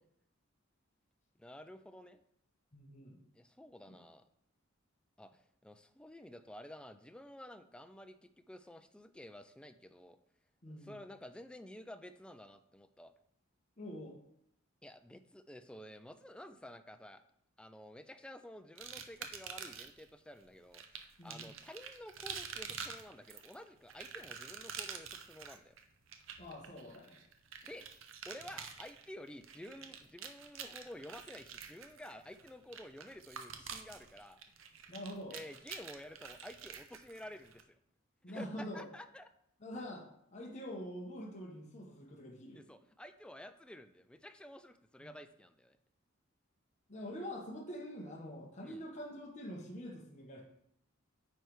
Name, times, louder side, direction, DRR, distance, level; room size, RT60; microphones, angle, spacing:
voice 1, 1.4-2.2 3.3-4.3 5.2-10.2 10.7-13.1 14.8-17.2 17.6-25.8 27.6-27.9 28.3-34.4 35.3-37.8 38.3-39.3 42.5-45.8 48.6-48.9, left 1 dB, 5° left, 10 dB, 0.3 m, -51 dB
voice 2, 2.7-3.2 3.9-4.0 10.6-10.9 13.8-14.2 21.2-21.5 26.4-27.2 34.9-35.4 38.2-38.9 39.6-40.1 40.3-42.6 45.0-45.1 46.9-50.4, equal, 35° left, -2 dB, 1.1 m, -45 dB
sound 1, 18.8-20.0 20.7-37.6, right 7 dB, 70° right, 0.7 m, -47 dB
9.0 x 3.3 x 4.7 m, 0.74 s
head